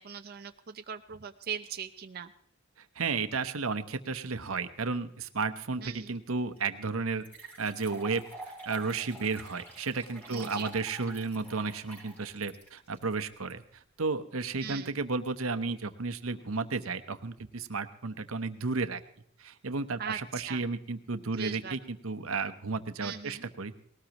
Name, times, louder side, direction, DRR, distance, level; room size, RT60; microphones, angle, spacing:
voice 1, 0.0-2.3 5.8-6.1 10.3-10.7 14.6-15.0 20.0-20.2 20.5-20.7 21.3-21.8 23.0-23.4, right 7 dB, 50° right, 7 dB, 0.6 m, -40 dB
voice 2, 2.9-7.2 7.6-13.6 14.0-19.0 19.4-23.8, right 4 dB, 90° right, 11 dB, 1.0 m, -33 dB
sound 1, 6.6-6.7 7.2-13.5, right 1 dB, 10° left, 5.5 m, -47 dB
19.5 x 18.0 x 3.0 m, 0.65 s
head